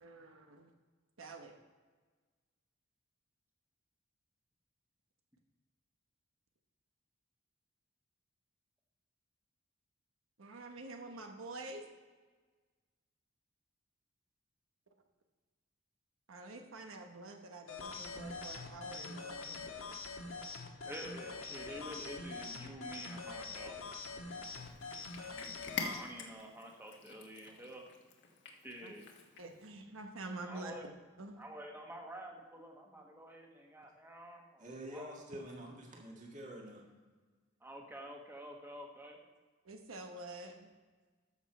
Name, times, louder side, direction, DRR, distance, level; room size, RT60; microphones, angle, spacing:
voice 1, 0.0-0.7 1.2-1.6 10.4-11.9 16.3-19.7 24.5-24.6 28.8-28.9 29.4-30.7 31.2-31.4 39.6-40.7, right 2 dB, 90° right, 4 dB, 1.0 m, -47 dB
sound 1, 17.7-26.0, left 4 dB, 80° left, 1.4 m, -44 dB
voice 2, 20.8-23.8 25.8-27.8 28.6-29.1 30.4-30.9 31.4-34.7 34.9-35.2 37.6-39.2, right 1 dB, 10° right, 1 dB, 1.3 m, -49 dB
Cat, 24.4-29.7, left 4 dB, 60° left, 1.2 m, -46 dB
voice 3, 34.6-36.8, equal, 40° right, -1 dB, 1.7 m, -47 dB
13.5 x 6.1 x 4.2 m, 1.4 s
head